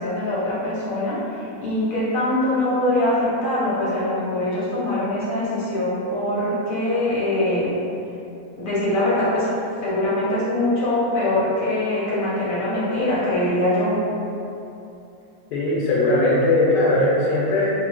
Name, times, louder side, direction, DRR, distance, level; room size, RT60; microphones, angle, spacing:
voice 1, 0.0-7.7 8.6-9.5 9.8-14.0, left 1 dB, 45° left, -9 dB, 0.7 m, -23 dB
voice 2, 15.5-17.7, left 2 dB, 85° left, -6 dB, 1.2 m, -19 dB
2.9 x 2.2 x 3.2 m, 2.7 s
omnidirectional pair, 1.7 m